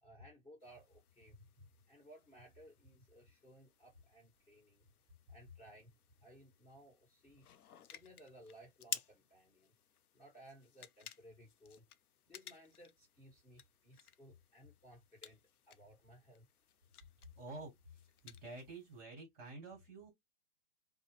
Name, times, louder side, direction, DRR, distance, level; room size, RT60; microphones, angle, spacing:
voice 1, 0.0-4.8 5.3-7.4 7.9-9.7 10.1-11.8 12.3-15.4 15.7-16.4, equal, 15° left, 1.4 m, -60 dB
sound 1, 0.6-19.0, left 9 dB, 85° left, 0.6 m, -54 dB
voice 2, 17.4-20.1, right 2 dB, 20° right, 1.4 m, -50 dB
2.7 x 2.1 x 3.1 m
hypercardioid pair, 140°, 44 cm